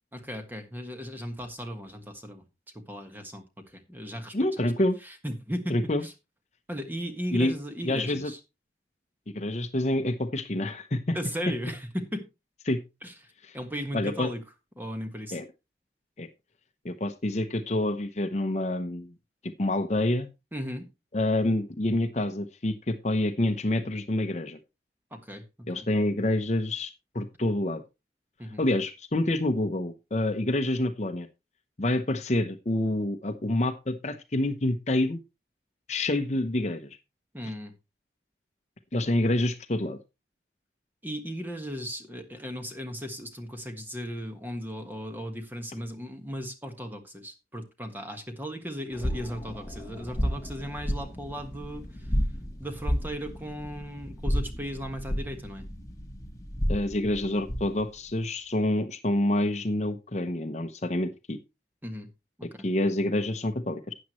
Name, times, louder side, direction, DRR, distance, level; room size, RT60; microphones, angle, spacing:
voice 1, 0.1-2.4 2.9-4.3 5.0-5.7 6.0-6.1 6.7-8.4 11.1-12.3 13.0-13.1 13.5-14.4 14.8-15.4 20.5-20.9 25.1-25.9 28.4-28.6 37.3-37.7 41.0-51.9 52.6-55.7 61.8-62.1 62.4-62.7, equal, 10° right, 5 dB, 1.5 m, -36 dB
voice 2, 4.3-5.0 5.7-6.0 7.3-7.5 7.8-8.3 9.3-11.2 12.7-12.8 13.4-13.6 13.9-14.3 15.3-15.4 16.2-16.3 16.8-19.1 19.6-20.3 21.1-24.6 25.7-26.9 27.1-27.8 28.6-31.3 31.8-35.2 35.9-36.9 38.9-40.0 56.7-61.4 62.6-63.9, left 1 dB, 40° left, 8 dB, 0.8 m, -27 dB
sound 1, 48.9-57.8, equal, 20° left, 1.5 m, -32 dB
12.5 x 8.6 x 3.1 m, 0.25 s
head